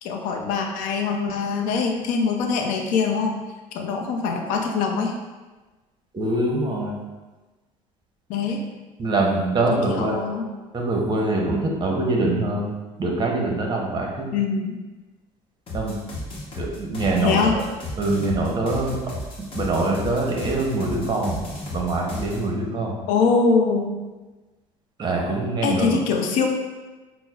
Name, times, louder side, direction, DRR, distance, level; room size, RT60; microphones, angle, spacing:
voice 1, 0.0-3.4 3.7-5.1 8.3-8.6 9.7-10.5 14.3-14.8 17.2-17.6 23.1-23.9 25.6-26.5, left 5 dB, 80° left, 3 dB, 0.5 m, -23 dB
voice 2, 6.1-6.9 9.0-10.2 10.7-12.7 13.0-14.3 15.7-16.0 16.6-17.6 18.0-19.0 19.4-21.4 21.7-23.0 25.0-26.0, right 2 dB, 35° right, -1 dB, 0.8 m, -24 dB
sound 1, 15.7-22.4, left 2 dB, 40° left, 0.9 m, -34 dB
6.0 x 2.0 x 2.3 m, 1.2 s
supercardioid pair, 95°, 14 cm